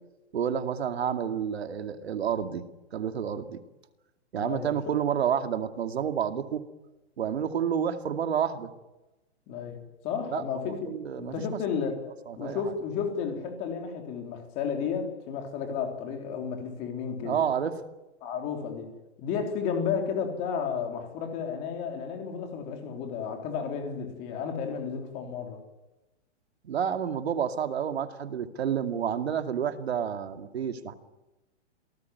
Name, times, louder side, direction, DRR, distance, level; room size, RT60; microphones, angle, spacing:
voice 1, 0.3-2.6 2.9-3.6 4.3-6.6 7.2-8.7 10.3-11.4 12.3-12.6 17.2-17.7 26.6-30.9, right 8 dB, 60° right, 2.4 m, -29 dB
voice 2, 4.4-5.0 9.5-9.8 10.0-12.0 12.4-17.4 18.2-18.9 19.2-25.6, left 6 dB, 20° left, 3.6 m, -32 dB
29.0 x 19.0 x 9.5 m
hypercardioid pair, 175°, 35 cm